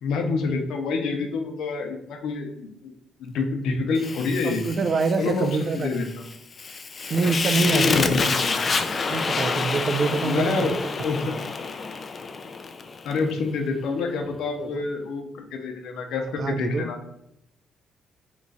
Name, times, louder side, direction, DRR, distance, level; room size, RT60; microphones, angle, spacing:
voice 1, 0.0-2.9 3.2-4.6 5.2-5.5 5.7-6.1 7.5-8.6 10.2-10.8 11.0-11.4 13.0-17.0, left 4 dB, 80° left, 4 dB, 0.6 m, -27 dB
Fire, 4.0-13.2, left 4 dB, 40° left, 0.3 m, -28 dB
voice 2, 4.4-6.0 7.1-8.3 9.1-10.7 11.3-11.4 14.6-14.8 16.4-16.9, right 4 dB, 50° right, 10 dB, 0.3 m, -25 dB
3.0 x 2.4 x 3.9 m, 0.79 s
cardioid pair, 90°, 0 cm